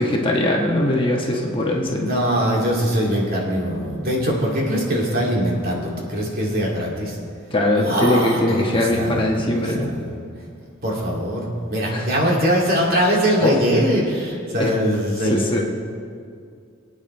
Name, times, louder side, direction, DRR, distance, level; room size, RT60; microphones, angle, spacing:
voice 1, 0.0-2.1 7.5-9.9 11.9-12.1 13.4-13.6 14.6-14.7 15.2-15.6, left 1 dB, 25° left, -2 dB, 1.3 m, -21 dB
voice 2, 1.9-7.2 7.8-9.4 9.9-10.1 10.8-15.5, equal, 45° right, -3 dB, 2.5 m, -22 dB
24.5 x 8.8 x 3.3 m, 2.3 s
head